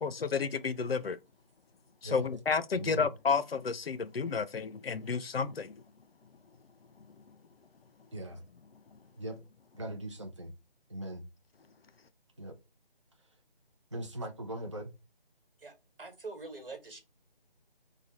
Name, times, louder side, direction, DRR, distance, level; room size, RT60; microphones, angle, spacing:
voice 1, 0.0-1.2 2.0-5.8 7.0-7.4 8.7-9.0, left 5 dB, 80° left, 0.5 m, -32 dB
voice 2, 2.7-3.1 8.1-8.4 9.2-9.4 9.7-10.5 10.9-11.2 12.4-12.5 13.9-14.9, right 1 dB, 30° right, 0.5 m, -39 dB
voice 3, 15.6-17.0, right 3 dB, 70° right, 1.4 m, -45 dB
3.2 x 2.2 x 4.0 m
figure-of-eight pair, 160°, 29 cm